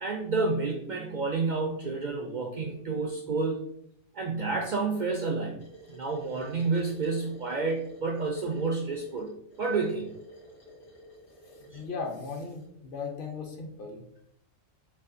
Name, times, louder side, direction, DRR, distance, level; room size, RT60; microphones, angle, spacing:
voice 1, 0.0-3.6 4.1-5.6 5.9-9.3 9.6-10.1 11.7-11.8, right 3 dB, 60° right, 1 dB, 0.4 m, -30 dB
sound 1, 5.6-12.7, right 1 dB, 85° left, 1.9 m, -51 dB
voice 2, 11.7-14.0, left 4 dB, 50° left, 2 dB, 0.8 m, -37 dB
7.0 x 2.4 x 2.6 m, 0.74 s
omnidirectional pair, 1.3 m